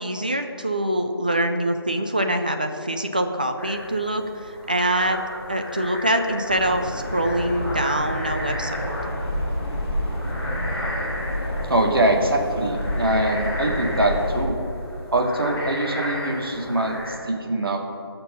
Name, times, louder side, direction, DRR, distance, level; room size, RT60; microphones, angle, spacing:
voice 1, 0.0-5.2 5.5-8.9, right 1 dB, 20° right, 5 dB, 0.4 m, -24 dB
sound 1, 3.6-17.1, left 1 dB, 10° left, 2.6 m, -34 dB
sound 2, 6.5-14.5, equal, 30° left, 2.2 m, -29 dB
voice 2, 11.7-14.6 15.1-17.8, right 1 dB, 60° right, 1 dB, 2.0 m, -23 dB
16.5 x 6.7 x 5.5 m, 2.5 s
figure-of-eight pair, 165°, 13 cm